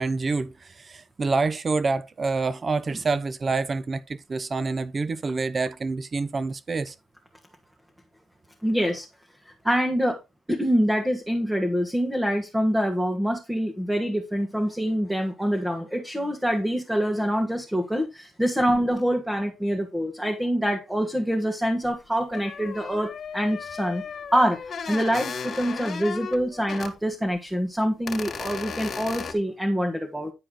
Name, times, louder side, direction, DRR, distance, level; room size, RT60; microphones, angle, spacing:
voice 1, 0.0-6.9, right 4 dB, 35° right, 0.8 m, -27 dB
voice 2, 8.6-9.1 9.4-10.2 10.5-24.0 24.3-24.6 24.9-30.3, equal, 5° right, 1.5 m, -25 dB
sound 1, 21.8-21.9 22.3-26.9 27.3-27.4 28.1-29.3, left 6 dB, 50° left, 1.9 m, -35 dB
10.5 x 4.8 x 3.8 m
cardioid pair, 90°, 0 cm